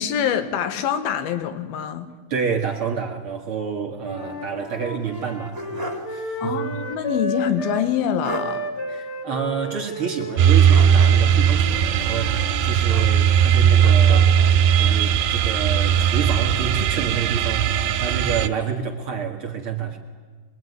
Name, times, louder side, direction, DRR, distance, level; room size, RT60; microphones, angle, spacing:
voice 1, 0.0-2.1 6.4-8.7, left 9 dB, 70° left, 10 dB, 3.1 m, -25 dB
voice 2, 2.3-6.7 8.9-14.3 14.8-20.0, right 6 dB, 55° right, 2 dB, 1.5 m, -29 dB
Wind instrument woodwind instrument, 4.0-7.9 8.3-12.6, right 1 dB, 35° left, 2.7 m, -33 dB
sound 1, 5.1-6.2 6.5-6.6 7.9-8.0 8.2-8.6 10.7-11.4 12.8-13.5 13.8-14.6, right 1 dB, 10° right, 2.2 m, -35 dB
sound 2, 10.4-18.5, right 8 dB, 80° right, 3.5 m, -18 dB
26.0 x 22.0 x 9.5 m, 1.4 s
omnidirectional pair, 4.9 m